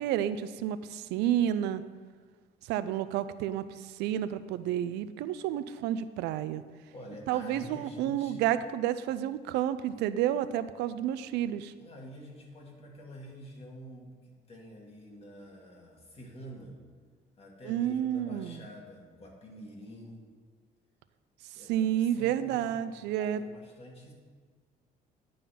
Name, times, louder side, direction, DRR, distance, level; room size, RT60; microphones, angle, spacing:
voice 1, 0.0-1.8 2.7-6.6 7.3-11.7 17.6-18.6 21.7-23.4, right 11 dB, 90° right, 14 dB, 0.4 m, -30 dB
voice 2, 6.9-8.5 11.8-16.8 17.4-20.2 21.5-24.1, equal, 35° left, -1 dB, 2.0 m, -47 dB
11.0 x 3.9 x 5.7 m, 1.5 s
cardioid pair, 110°, 17 cm